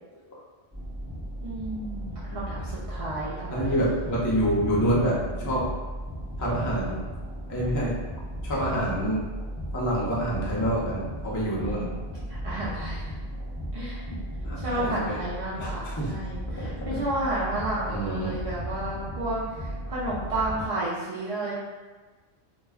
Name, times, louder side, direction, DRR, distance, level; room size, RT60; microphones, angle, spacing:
sound 1, 0.7-20.6, equal, 15° right, 0.8 m, -35 dB
voice 1, 1.4-3.9 11.4-12.0 12.3-13.1 13.7-14.0 14.6-21.5, right 1 dB, 55° right, -8 dB, 0.4 m, -32 dB
voice 2, 3.5-5.7 6.4-7.0 7.5-7.9 8.4-9.2 9.7-11.9 14.4-15.2 15.6-16.1 16.6-17.0 17.9-18.4, right 1 dB, 25° left, -5 dB, 0.4 m, -27 dB
2.3 x 2.1 x 3.5 m, 1.3 s
omnidirectional pair, 1.2 m